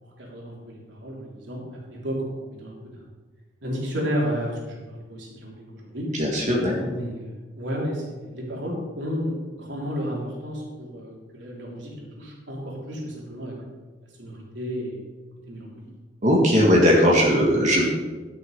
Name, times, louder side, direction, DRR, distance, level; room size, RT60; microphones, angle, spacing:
voice 1, 0.0-3.0 3.6-6.1 6.8-13.6 14.2-15.0 15.5-15.9, equal, 80° right, -3 dB, 3.4 m, -32 dB
voice 2, 6.2-6.8 16.2-17.8, equal, 40° right, -2 dB, 1.8 m, -18 dB
12.0 x 6.6 x 5.4 m, 1.3 s
head